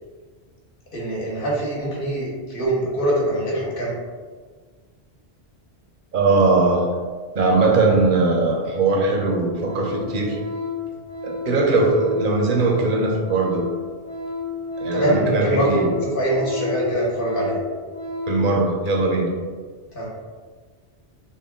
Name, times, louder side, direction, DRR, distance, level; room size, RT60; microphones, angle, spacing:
voice 1, 0.9-4.0 14.9-17.6 19.9-20.1, right 1 dB, 55° left, -4 dB, 1.2 m, -23 dB
voice 2, 6.1-6.9 7.3-10.4 11.2-13.6 14.8-15.9 18.3-19.3, right 3 dB, 55° right, 0 dB, 0.8 m, -20 dB
Organ, 8.5-8.7 8.9-18.5 18.8-19.0, left 4 dB, 25° left, 0.9 m, -32 dB
3.6 x 2.3 x 3.6 m, 1.5 s
omnidirectional pair, 1.1 m